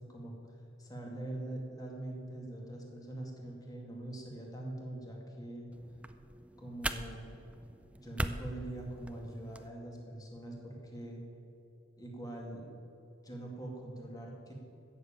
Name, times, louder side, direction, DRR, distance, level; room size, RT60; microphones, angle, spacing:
voice 1, 0.0-5.7 6.6-7.3 8.0-11.2 12.0-12.7 13.2-14.5, right 1 dB, 20° left, 0 dB, 2.3 m, -43 dB
sound 1, 5.7-9.7, right 1 dB, 5° right, 0.4 m, -41 dB
14.0 x 7.2 x 8.8 m, 2.9 s
head